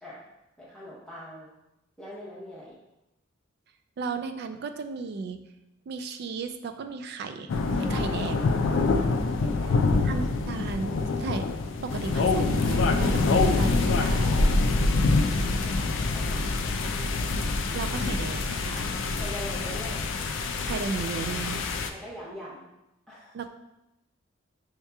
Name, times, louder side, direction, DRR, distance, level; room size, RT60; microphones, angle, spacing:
voice 1, 0.6-1.5 2.0-2.7 7.7-8.3 8.6-9.9 14.5-16.6 19.2-20.0 21.9-22.6 23.1-23.4, equal, ahead, -9 dB, 0.7 m, -42 dB
voice 2, 4.0-5.4 5.9-7.5 7.9-8.4 10.0-10.9 11.2-11.5 11.8-14.3 17.7-19.0 20.7-21.7 23.3-23.5, right 4 dB, 55° right, 8 dB, 0.3 m, -34 dB
sound 1, 7.5-21.9, left 3 dB, 65° left, 0.3 m, -25 dB
5.7 x 2.8 x 2.2 m, 0.92 s
head